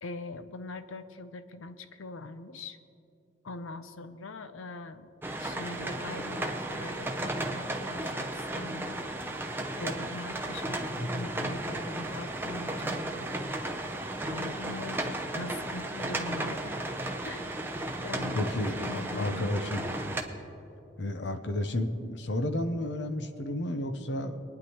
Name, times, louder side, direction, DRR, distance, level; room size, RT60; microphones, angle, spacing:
voice 1, 0.0-2.8 3.4-5.1 5.4-9.0 9.8-13.4 14.2-16.7 17.2-17.5 18.0-19.4 21.2-21.3, left 2 dB, 90° left, 11 dB, 0.7 m, -42 dB
sound 1, 5.2-20.2, right 1 dB, 10° right, 0.6 m, -34 dB
voice 2, 18.3-18.8 19.2-19.8 21.0-24.4, left 1 dB, 60° left, 7 dB, 0.8 m, -31 dB
24.5 x 9.9 x 3.1 m, 2.8 s
head